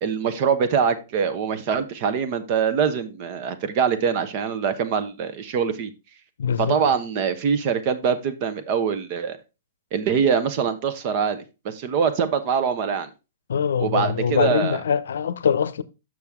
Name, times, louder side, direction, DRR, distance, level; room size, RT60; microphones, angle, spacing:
voice 1, 0.0-5.9 6.6-9.4 9.9-13.1 13.8-14.8, right 6 dB, 45° right, 1.0 m, -23 dB
voice 2, 6.4-6.8 13.5-15.8, left 7 dB, 85° left, 0.6 m, -23 dB
6.9 x 6.3 x 3.5 m
hypercardioid pair, 140°, 0 cm